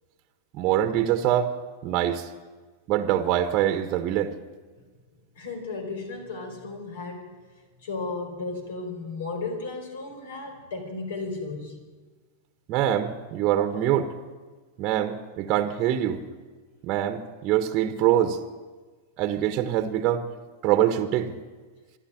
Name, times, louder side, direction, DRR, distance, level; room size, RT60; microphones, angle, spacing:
voice 1, 0.5-1.5 1.8-2.3 2.9-4.3 12.7-14.1 14.8-16.2 16.8-18.4 19.2-20.3 20.6-21.3, right 11 dB, 40° right, 9 dB, 1.3 m, -24 dB
voice 2, 5.3-7.4 7.8-11.9, left 3 dB, 60° left, 6 dB, 4.6 m, -34 dB
26.0 x 11.0 x 9.0 m, 1.4 s
figure-of-eight pair, 90°, 0 cm